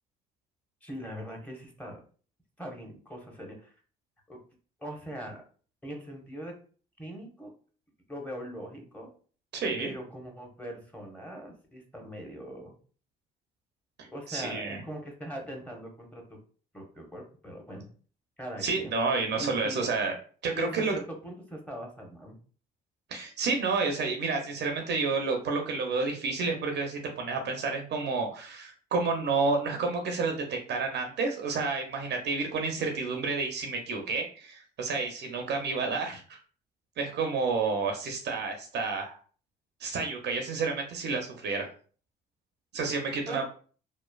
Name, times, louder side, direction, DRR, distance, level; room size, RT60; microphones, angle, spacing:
voice 1, 0.8-2.0 2.6-3.7 4.3-4.4 4.8-5.4 5.8-6.5 7.0-7.5 8.1-9.1 9.8-12.8 14.1-16.4 16.7-17.9 18.4-18.9 19.4-19.9 20.5-22.4 43.3-43.5, equal, 5° left, 0 dB, 1.0 m, -41 dB
voice 2, 9.5-9.9 14.3-14.8 18.6-20.1 20.4-20.9 23.1-36.4 37.0-39.2 39.8-41.7 42.7-43.5, right 4 dB, 55° right, 3 dB, 0.6 m, -30 dB
3.0 x 2.0 x 2.3 m, 0.41 s
hypercardioid pair, 60°, 21 cm